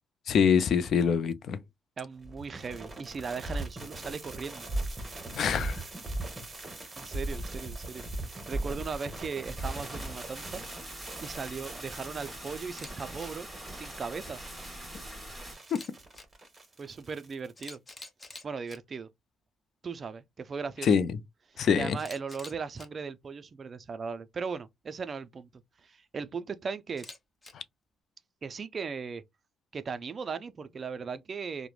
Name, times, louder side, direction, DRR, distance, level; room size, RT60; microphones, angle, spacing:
voice 1, 0.3-1.6 5.3-5.8 20.8-21.1 21.6-22.0 27.5-27.6, left 7 dB, 60° left, 0.4 m, -24 dB
voice 2, 2.0-4.7 7.0-10.6 11.2-14.4 16.8-17.8 18.4-19.1 19.8-20.9 21.5-27.1 28.4-29.2 29.7-31.7, right 5 dB, 40° right, 0.3 m, -38 dB
sound 1, 2.2-17.5, right 2 dB, 25° right, 1.0 m, -39 dB
sound 2, 9.6-15.6, right 1 dB, ahead, 1.3 m, -44 dB
Camera, 12.7-12.9 13.2-13.3 15.6-16.2 17.2-17.3 17.6-18.8 22.0-22.9 26.9-27.5, left 2 dB, 20° left, 0.6 m, -46 dB
3.0 x 2.1 x 2.3 m
cardioid pair, 90°, 0 cm